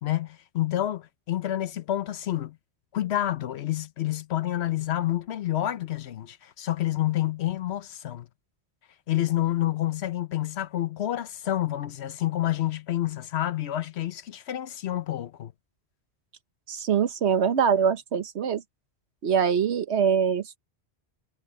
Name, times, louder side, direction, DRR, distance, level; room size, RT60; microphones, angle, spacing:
voice 1, 0.0-2.6 2.9-8.3 9.1-15.5, left 13 dB, 80° left, 1.0 m, -28 dB
voice 2, 16.7-18.6 19.2-20.6, right 7 dB, 85° right, 1.3 m, -23 dB
omnidirectional pair, 1.1 m